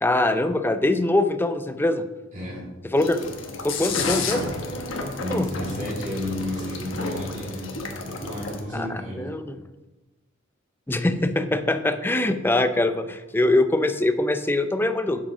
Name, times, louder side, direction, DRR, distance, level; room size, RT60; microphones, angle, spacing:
voice 1, 0.0-2.0 2.9-3.2 3.6-4.4 5.3-5.5 8.7-9.6 10.9-15.2, left 2 dB, 10° left, 9 dB, 0.5 m, -23 dB
voice 2, 2.3-2.7 4.9-9.3, left 1 dB, 40° right, -7 dB, 2.6 m, -32 dB
sound 1, 3.0-8.6, left 3 dB, 75° left, 1.3 m, -31 dB
7.4 x 7.2 x 4.9 m, 1.1 s
head